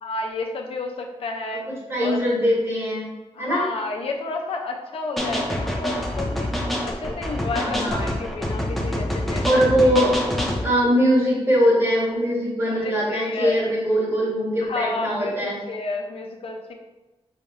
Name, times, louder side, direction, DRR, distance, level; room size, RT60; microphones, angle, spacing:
voice 1, 0.0-2.2 3.3-6.5 6.8-10.1 12.6-13.6 14.6-16.7, left 3 dB, 65° left, 2 dB, 0.6 m, -31 dB
voice 2, 1.9-3.1 3.3-3.7 7.5-8.1 9.4-10.1 10.6-15.6, equal, 25° right, -6 dB, 1.5 m, -21 dB
sound 1, 5.2-10.7, left 1 dB, ahead, 0.6 m, -26 dB
5.0 x 3.2 x 2.5 m, 1.1 s
wide cardioid pair, 150°, 11 cm